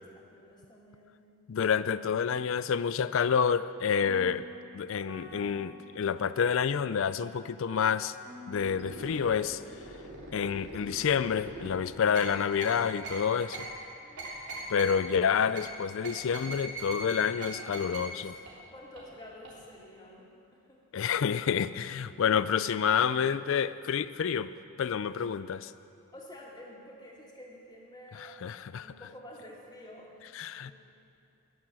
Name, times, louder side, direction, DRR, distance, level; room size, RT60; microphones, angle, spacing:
voice 1, 0.1-1.2 14.0-14.3 17.5-20.8 26.1-30.7, left 1 dB, 20° left, -2 dB, 2.1 m, -50 dB
voice 2, 1.5-4.4 4.7-8.2 8.5-9.6 10.3-13.7 14.7-18.3 20.9-24.5 24.8-25.7 28.4-28.9 30.4-30.7, left 7 dB, 60° left, 15 dB, 0.4 m, -28 dB
sound 1, 3.8-10.4, left 2 dB, 15° right, 1.8 m, -51 dB
sound 2, 8.6-9.3 9.7-11.7 12.1-12.3 12.6-12.7 13.0-13.2 13.5-13.7 14.2-14.9 15.5-15.6 16.0-17.1 17.4-17.5 17.7-18.0 18.5-18.6 19.0-19.1 19.4-19.5, right 3 dB, 80° right, 3.6 m, -40 dB
20.5 x 7.1 x 7.5 m, 2.6 s
head